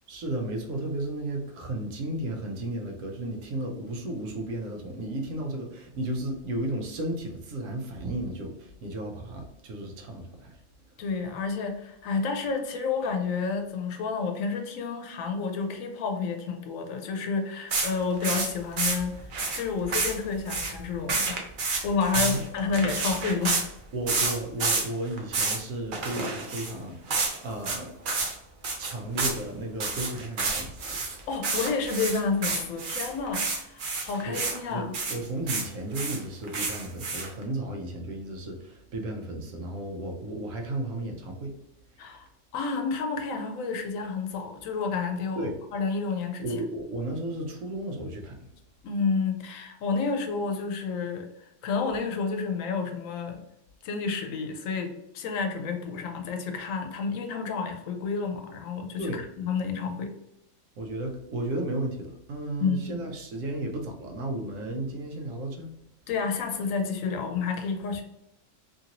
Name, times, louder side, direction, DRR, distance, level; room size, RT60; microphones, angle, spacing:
voice 1, 0.1-10.6 22.1-22.4 22.7-22.9 23.9-27.9 28.8-31.1 34.3-34.4 34.7-41.5 45.3-45.5 46.4-48.4 59.0-59.2 60.8-65.7, right 1 dB, 75° right, 2 dB, 1.0 m, -34 dB
voice 2, 11.0-19.2 19.5-21.4 21.8-23.6 31.3-34.9 42.0-42.3 42.5-46.4 48.8-53.4 53.8-60.1 62.6-63.0 66.1-68.0, left 5 dB, 85° left, 4 dB, 1.0 m, -30 dB
sound 1, 17.7-23.6 24.1-24.9 25.1-25.6 25.9-26.7 27.1-27.4 27.6-27.8 28.1-28.3 28.6-29.4 29.8-34.6 34.9-35.7 35.9-37.4, right 3 dB, 55° right, 0.6 m, -29 dB
3.0 x 2.6 x 2.8 m, 0.80 s
omnidirectional pair, 1.4 m